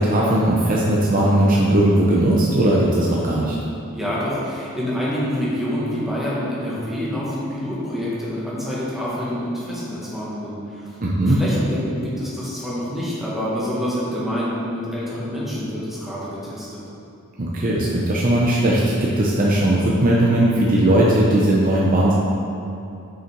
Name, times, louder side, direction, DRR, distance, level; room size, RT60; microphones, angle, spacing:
voice 1, 0.0-3.6 11.0-11.4 17.4-22.1, right 1 dB, 40° right, -4 dB, 0.7 m, -18 dB
voice 2, 3.9-11.0 11.2-16.8, equal, ahead, -8 dB, 1.6 m, -27 dB
6.5 x 5.6 x 4.6 m, 2.8 s
head